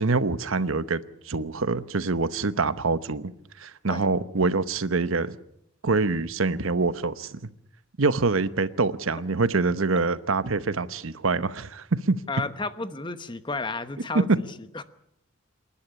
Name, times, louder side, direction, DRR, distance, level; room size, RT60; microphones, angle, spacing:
voice 1, 0.0-3.3 3.6-5.4 5.8-7.4 8.0-12.2, right 3 dB, 80° right, 1.0 m, -25 dB
voice 2, 12.3-14.5 14.7-14.8, left 3 dB, 20° left, 1.0 m, -32 dB
27.5 x 11.5 x 9.9 m
head